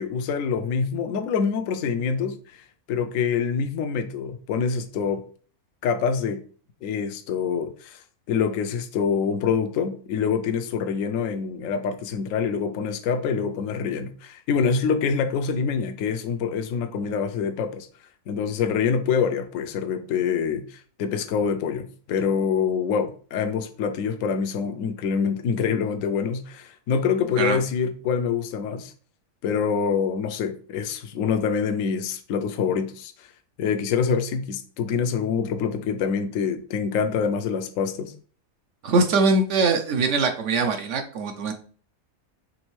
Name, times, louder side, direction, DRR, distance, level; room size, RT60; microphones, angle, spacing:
voice 1, 0.0-2.4 2.9-5.2 5.8-6.4 6.8-17.9 18.3-28.9 29.4-33.3 33.6-38.1, left 6 dB, 70° left, 0.9 m, -25 dB
voice 2, 38.8-41.5, right 3 dB, 65° right, 0.9 m, -22 dB
5.2 x 3.2 x 3.1 m
omnidirectional pair, 1.5 m